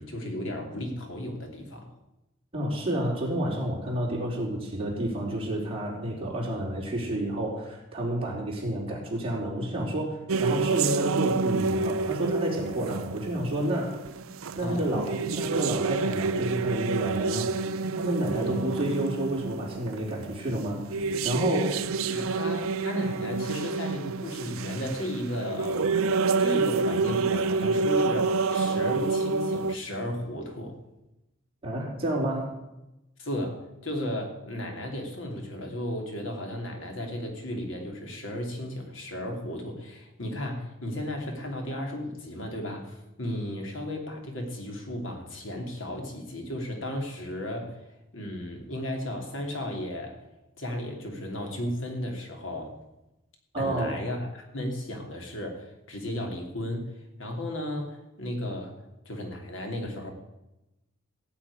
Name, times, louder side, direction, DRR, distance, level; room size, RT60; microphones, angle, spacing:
voice 1, 0.0-1.9 14.6-15.0 18.3-18.6 22.1-26.0 26.4-30.8 33.2-47.9 48.1-50.3 50.6-52.8 53.6-58.8 59.0-60.1, left 1 dB, 70° left, 2 dB, 2.9 m, -34 dB
voice 2, 2.5-13.9 14.5-17.5 18.0-21.9 31.6-32.6 53.5-54.0, right 1 dB, 25° right, -3 dB, 4.3 m, -30 dB
sound 1, 10.3-29.8, right 4 dB, 90° right, 0.6 m, -28 dB
16.5 x 6.2 x 9.8 m, 0.94 s
head